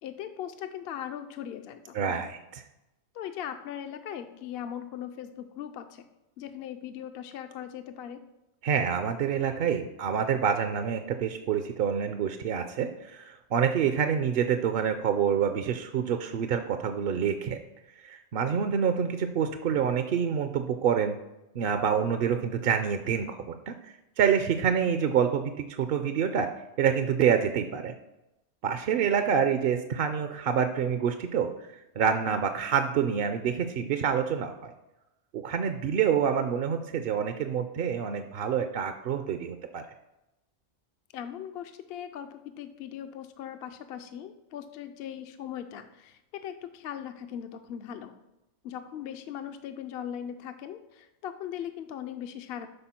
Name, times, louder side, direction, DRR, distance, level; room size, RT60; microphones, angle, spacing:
voice 1, 0.0-2.2 3.1-6.1 6.4-8.2 41.1-48.1 48.6-52.7, left 9 dB, 65° left, 8 dB, 0.7 m, -39 dB
voice 2, 1.9-2.6 8.6-17.6 17.9-21.2 21.5-26.5 26.8-27.9 28.6-31.5 32.0-34.7 35.3-39.9, right 7 dB, 60° right, 8 dB, 0.7 m, -27 dB
12.0 x 4.3 x 4.3 m, 0.93 s
omnidirectional pair, 1.2 m